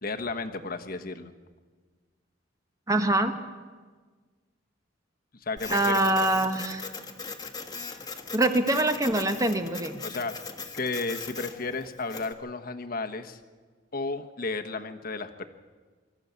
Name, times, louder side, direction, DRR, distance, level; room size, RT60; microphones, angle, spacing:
voice 1, 0.0-1.3 5.4-6.0 10.0-10.3 10.7-13.4 13.9-15.5, left 3 dB, 50° left, 6 dB, 1.3 m, -33 dB
voice 2, 2.9-3.3 5.7-6.9 8.3-10.0, right 1 dB, 15° right, 7 dB, 1.2 m, -24 dB
Printer, 5.6-12.3, left 4 dB, 20° left, 1.4 m, -39 dB
25.0 x 13.5 x 8.2 m, 1.4 s
head